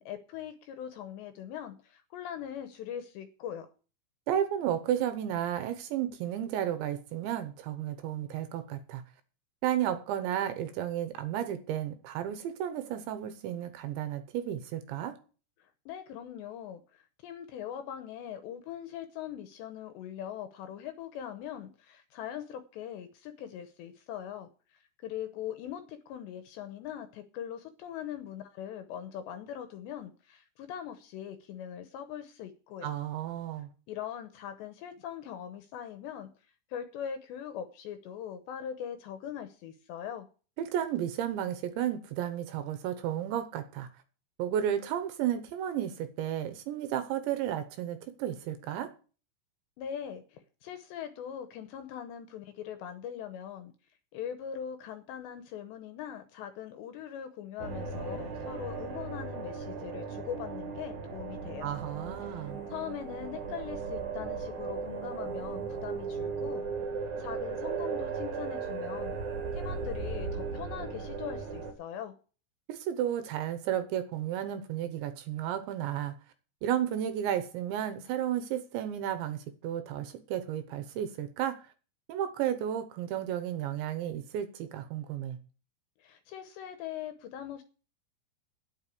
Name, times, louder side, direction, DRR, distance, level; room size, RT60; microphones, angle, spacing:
voice 1, 0.0-3.7 15.9-32.9 33.9-36.3 36.7-40.3 49.8-53.7 54.1-61.7 62.2-66.7 67.2-69.2 69.5-72.1 86.0-87.6, left 9 dB, 75° left, 2.7 m, -41 dB
voice 2, 4.3-9.0 9.6-15.1 32.8-33.7 40.6-43.9 44.4-48.9 61.6-62.6 72.7-76.1 76.6-81.6 82.1-85.4, right 10 dB, 75° right, 3.0 m, -33 dB
sound 1, 57.6-71.7, right 5 dB, 50° right, 2.4 m, -37 dB
9.5 x 8.0 x 8.3 m
omnidirectional pair, 5.7 m